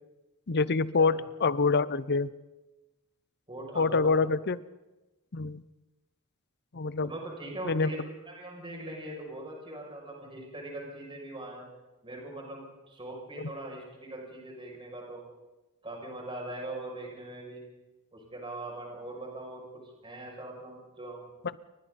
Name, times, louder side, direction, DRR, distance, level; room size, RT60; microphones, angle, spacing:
voice 1, 0.5-2.3 3.8-4.6 5.3-5.6 6.7-7.1 7.6-7.9 13.4-13.5, left 4 dB, 50° left, 17 dB, 0.7 m, -26 dB
voice 2, 3.5-4.2 7.0-8.0 8.3-11.7 12.0-15.2 15.8-17.6 18.1-19.6 20.0-21.3, right 1 dB, 25° right, -1 dB, 7.0 m, -41 dB
29.5 x 24.0 x 4.2 m, 1.1 s
head